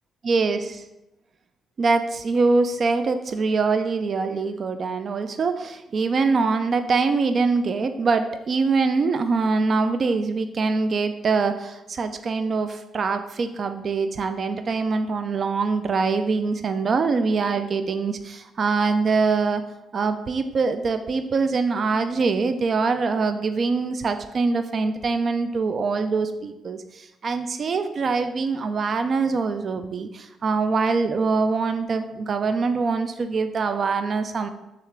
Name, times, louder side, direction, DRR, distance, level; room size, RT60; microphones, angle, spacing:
voice 1, 0.2-0.8 1.8-19.6 19.9-34.5, right 4 dB, 50° right, 9 dB, 0.3 m, -24 dB
6.6 x 2.4 x 3.3 m, 0.94 s
cardioid pair, 90°, 0 cm